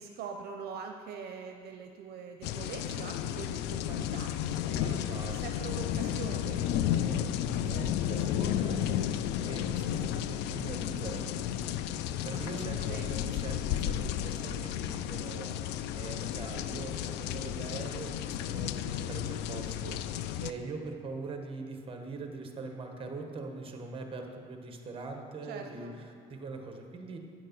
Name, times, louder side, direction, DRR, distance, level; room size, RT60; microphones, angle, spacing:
voice 1, 0.0-6.7 12.3-13.4 25.5-26.0, right 6 dB, 70° right, 4 dB, 0.7 m, -43 dB
sound 1, 2.4-20.5, left 10 dB, 90° left, 0.4 m, -33 dB
voice 2, 4.7-5.4 6.9-8.9 9.4-11.2 12.2-27.2, right 3 dB, 30° right, 4 dB, 1.2 m, -42 dB
8.9 x 6.6 x 5.8 m, 2.3 s
cardioid pair, 110°, 17 cm